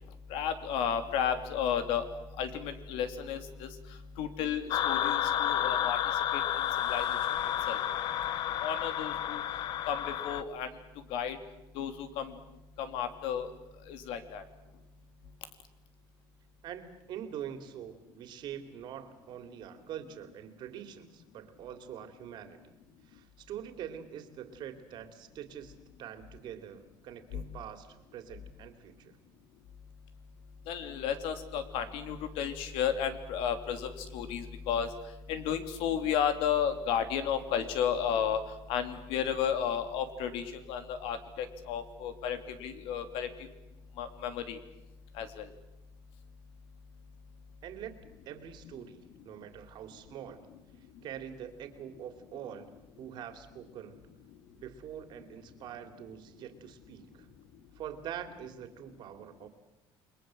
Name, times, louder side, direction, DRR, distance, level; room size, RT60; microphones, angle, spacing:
voice 1, 0.3-2.0 2.4-3.7 4.2-6.0 6.9-7.1 7.7-7.8 8.6-9.4 9.9-10.0 10.2-10.7 11.1-11.4 11.8-12.3 12.8-13.5 13.9-14.4 27.3-27.4 30.7-34.9 35.3-38.4 38.7-43.3 44.0-44.6 45.2-45.3, left 8 dB, 80° left, 8 dB, 2.9 m, -32 dB
sound 1, 4.7-10.4, left 11 dB, 55° left, 1.0 m, -31 dB
voice 2, 16.6-22.7 23.0-29.2 47.6-48.0 48.2-50.4 51.0-54.0 54.5-57.3 57.7-59.5, right 9 dB, 55° right, 8 dB, 3.0 m, -44 dB
29.0 x 22.0 x 7.8 m, 0.98 s
cardioid pair, 150°, 9 cm